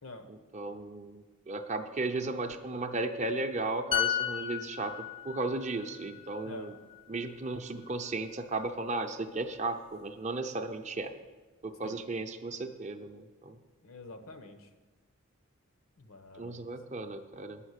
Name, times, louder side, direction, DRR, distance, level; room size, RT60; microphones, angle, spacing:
voice 1, 0.3-6.7 7.1-11.1 11.6-13.6 16.4-17.6, right 2 dB, 35° right, 7 dB, 0.6 m, -35 dB
sound 1, 3.9-7.5 7.8-8.1, left 11 dB, 25° left, 0.6 m, -35 dB
voice 2, 13.8-14.7 16.0-16.6, left 2 dB, 75° left, 9 dB, 1.0 m, -47 dB
9.4 x 5.8 x 8.1 m, 1.3 s
head